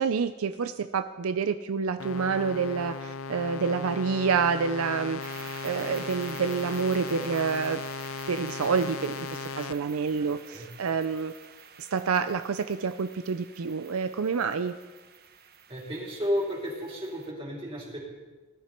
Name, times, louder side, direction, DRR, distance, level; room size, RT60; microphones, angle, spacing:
voice 1, 0.0-5.2 5.6-7.8 8.3-11.3 11.8-14.7, right 5 dB, 70° right, 10 dB, 0.5 m, -28 dB
sound 1, 2.0-9.7, left 5 dB, 70° left, 0.6 m, -37 dB
sound 2, 5.2-17.3, right 7 dB, 45° right, 1.0 m, -49 dB
voice 2, 10.2-10.7 15.7-18.0, equal, 25° right, -4 dB, 4.2 m, -33 dB
19.0 x 12.5 x 4.5 m, 1.3 s
head